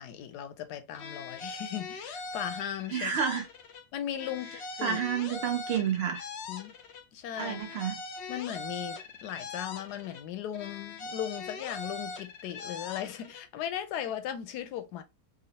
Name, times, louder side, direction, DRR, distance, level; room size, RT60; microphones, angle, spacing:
voice 1, 0.0-3.1 3.9-5.0 6.5-6.7 7.1-7.6 8.3-15.0, left 10 dB, 85° left, 1.2 m, -37 dB
sound 1, 0.9-3.8 4.1-7.0 7.3-10.2 10.5-13.4, left 3 dB, 65° left, 0.6 m, -41 dB
voice 2, 2.9-3.5 4.8-6.2 7.4-8.0, right 8 dB, 75° right, 0.5 m, -30 dB
3.7 x 2.0 x 2.7 m
omnidirectional pair, 1.7 m